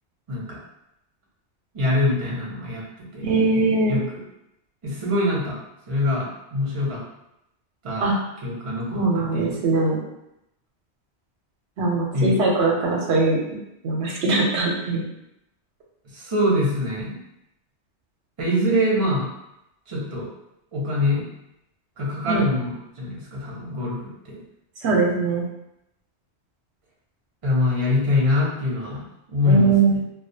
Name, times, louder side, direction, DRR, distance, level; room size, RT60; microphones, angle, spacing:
voice 1, 0.3-0.6 1.7-3.3 3.9-4.2 4.8-5.6 5.9-7.0 7.8-8.1 8.4-9.0 9.3-9.6 12.1-12.4 16.1-17.2 18.4-19.3 19.9-20.3 20.7-21.3 22.0-24.4 27.4-30.0, left 1 dB, 35° right, -5 dB, 0.7 m, -24 dB
voice 2, 3.2-4.0 8.0-8.2 8.9-10.0 11.8-13.4 13.8-15.0 22.3-22.5 24.8-25.4 29.4-29.9, right 3 dB, 85° right, -2 dB, 0.9 m, -21 dB
2.4 x 2.2 x 2.6 m, 0.83 s
omnidirectional pair, 1.1 m